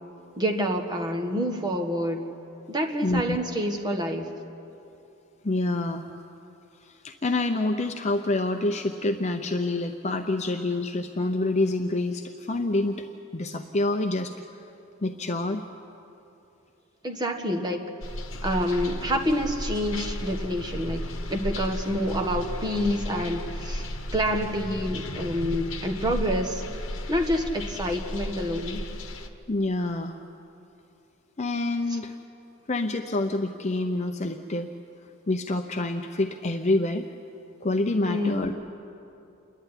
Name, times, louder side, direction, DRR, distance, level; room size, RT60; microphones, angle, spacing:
voice 1, 0.4-2.2 2.7-4.3 17.0-17.9 18.4-23.8 24.1-26.6 27.1-28.8 31.9-32.0 38.0-38.5, equal, 20° right, 3 dB, 1.5 m, -27 dB
voice 2, 3.0-3.4 5.4-6.1 6.8-13.1 13.3-14.3 15.0-15.6 29.5-30.2 31.4-32.2 32.7-34.7 35.3-37.1 37.6-38.5, left 2 dB, 30° left, 5 dB, 0.7 m, -27 dB
sound 1, 18.0-29.3, left 1 dB, 60° left, 1.3 m, -34 dB
28.0 x 11.5 x 9.8 m, 2.8 s
head